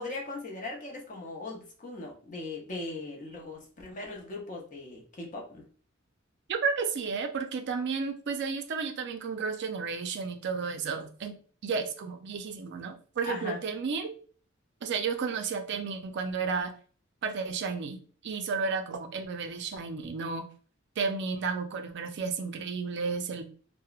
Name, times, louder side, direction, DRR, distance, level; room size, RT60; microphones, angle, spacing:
voice 1, 0.0-5.6 13.3-13.6, left 2 dB, 40° left, -1 dB, 0.7 m, -39 dB
voice 2, 6.5-11.4 11.6-14.1 14.8-16.7 17.2-20.4 21.0-23.4, right 5 dB, 55° right, 6 dB, 0.4 m, -32 dB
2.9 x 2.0 x 2.3 m, 0.42 s
head